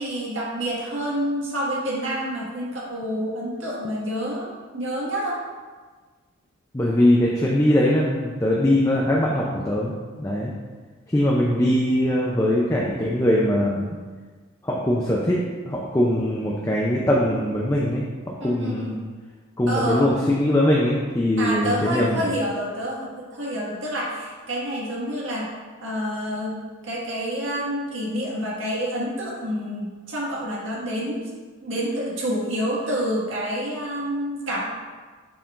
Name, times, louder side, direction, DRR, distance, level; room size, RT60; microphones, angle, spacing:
voice 1, 0.0-5.4 18.4-19.0 19.7-20.1 21.4-25.5 25.8-26.6 26.8-31.2 31.6-34.6, equal, 65° right, -6 dB, 1.7 m, -28 dB
voice 2, 6.7-10.5 11.1-13.9 14.6-15.4 15.7-18.9 19.6-22.3, left 1 dB, 15° left, -4 dB, 0.5 m, -21 dB
7.0 x 5.5 x 2.5 m, 1.4 s
head